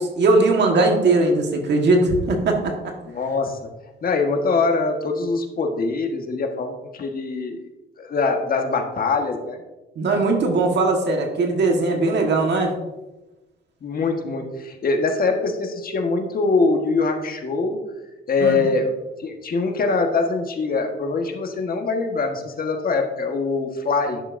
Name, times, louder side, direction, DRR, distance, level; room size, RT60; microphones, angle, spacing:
voice 1, 0.0-2.9 10.0-12.8 18.4-18.6, right 2 dB, 60° right, 2 dB, 1.5 m, -19 dB
voice 2, 3.1-3.6 4.0-7.6 8.0-9.6 13.8-17.8 18.3-18.9 19.2-24.2, left 3 dB, 45° left, 3 dB, 1.5 m, -23 dB
11.0 x 7.3 x 2.7 m, 1.0 s
cardioid pair, 90°, 20 cm